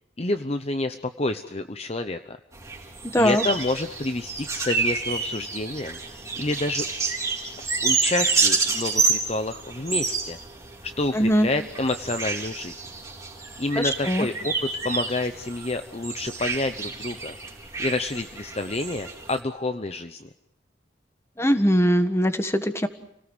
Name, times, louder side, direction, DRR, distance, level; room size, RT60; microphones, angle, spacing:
voice 1, 0.2-2.4 3.2-6.0 6.4-6.9 7.6-10.4 11.0-12.8 13.6-17.4 17.8-20.3, left 2 dB, 35° left, 8 dB, 0.9 m, -28 dB
sound 1, 2.5-19.4, right 4 dB, 15° right, 3.9 m, -29 dB
voice 2, 3.1-3.4 11.1-11.5 13.8-14.3 21.4-22.9, equal, 15° left, 8 dB, 1.6 m, -21 dB
29.5 x 18.5 x 8.0 m, 0.81 s
head